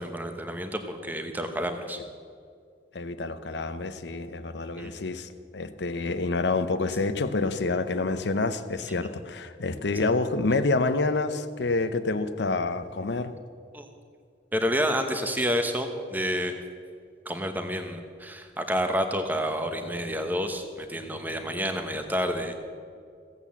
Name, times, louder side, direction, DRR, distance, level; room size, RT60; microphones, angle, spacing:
voice 1, 0.0-2.0 4.8-4.9 13.7-13.9 14.5-16.6 17.2-22.6, equal, 10° right, 6 dB, 1.0 m, -29 dB
voice 2, 2.9-13.3, left 3 dB, 70° left, 11 dB, 0.7 m, -28 dB
15.5 x 8.3 x 7.1 m, 2.2 s
head